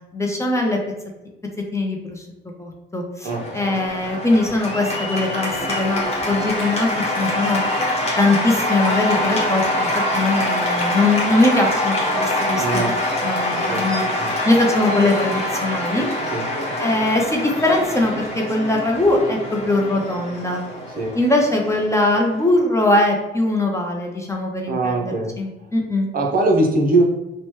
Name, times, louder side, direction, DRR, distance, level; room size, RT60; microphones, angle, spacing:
voice 1, 0.1-0.8 1.7-2.2 2.6-7.6 8.2-9.9 10.1-12.9 13.2-14.1 14.5-16.1 16.8-20.6 21.1-26.1, left 2 dB, 15° left, 1 dB, 0.5 m, -21 dB
Cheering / Applause, 3.3-22.5, left 1 dB, 30° left, 1.0 m, -24 dB
voice 2, 12.6-12.9 13.7-13.9 14.2-14.3 16.3-16.5 21.0-21.1 24.7-25.4 26.1-27.0, right 2 dB, 45° right, 1 dB, 0.6 m, -20 dB
2.9 x 2.1 x 3.0 m, 1.0 s
cardioid pair, 90°, 20 cm